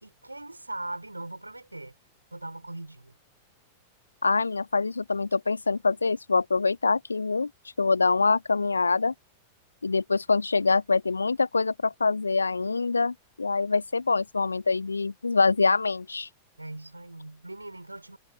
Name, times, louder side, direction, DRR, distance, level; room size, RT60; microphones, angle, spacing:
voice 1, 0.0-2.0 2.3-3.1 16.6-18.2, right 2 dB, 85° right, 4.2 m, -40 dB
voice 2, 4.2-7.5 7.8-9.1 9.8-16.3, left 4 dB, 80° left, 1.5 m, -25 dB
figure-of-eight pair, 95°, 0 cm